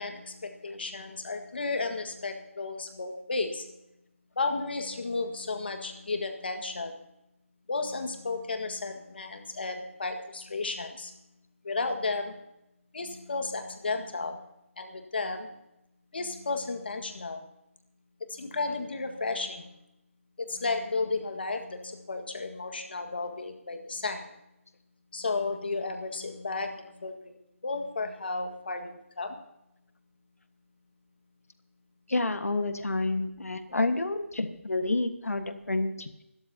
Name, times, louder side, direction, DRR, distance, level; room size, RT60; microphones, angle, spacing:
voice 1, 0.0-3.6 4.4-7.0 7.7-11.1 11.6-12.4 12.9-14.4 14.8-15.5 16.1-17.4 18.3-19.7 20.4-24.3 25.1-27.4 27.6-29.4, left 3 dB, 45° left, 5 dB, 1.7 m, -33 dB
voice 2, 32.1-36.1, left 2 dB, 90° left, 9 dB, 1.5 m, -29 dB
24.0 x 13.0 x 2.8 m, 0.85 s
figure-of-eight pair, 175°, 8 cm